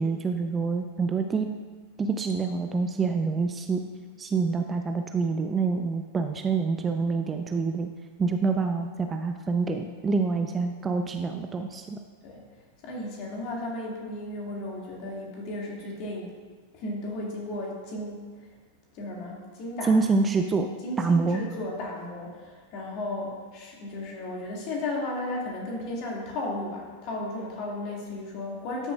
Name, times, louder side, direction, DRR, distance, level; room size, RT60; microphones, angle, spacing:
voice 1, 0.0-1.5 2.0-3.8 4.2-7.9 8.2-12.0 19.9-20.7 21.0-21.4, right 4 dB, 20° right, 5 dB, 0.4 m, -26 dB
voice 2, 12.8-16.3 16.7-18.3 18.9-19.9 20.8-28.9, left 1 dB, 40° left, -2 dB, 2.2 m, -34 dB
12.5 x 6.8 x 2.4 m, 1.5 s
figure-of-eight pair, 90°, 0 cm